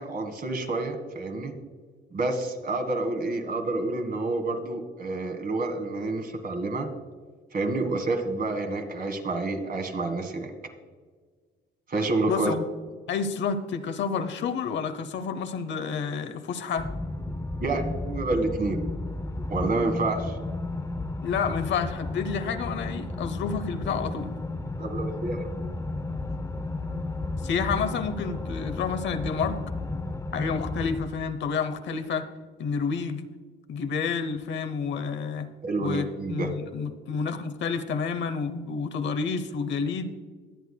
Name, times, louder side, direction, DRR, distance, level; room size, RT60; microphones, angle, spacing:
voice 1, 0.0-1.5 2.1-6.9 7.5-10.5 11.9-12.5 17.6-18.8 19.5-20.4 24.8-25.5 35.6-36.5, right 2 dB, 45° right, 5 dB, 1.7 m, -28 dB
voice 2, 12.3-12.6 13.1-16.9 21.2-24.3 27.4-29.6 30.3-32.3 32.6-33.3 33.7-35.5 35.8-40.1, left 5 dB, 65° left, 10 dB, 0.9 m, -29 dB
sound 1, 16.8-31.0, left 2 dB, 15° left, 0.7 m, -33 dB
21.5 x 8.2 x 2.3 m, 1.5 s
cardioid pair, 90°, 20 cm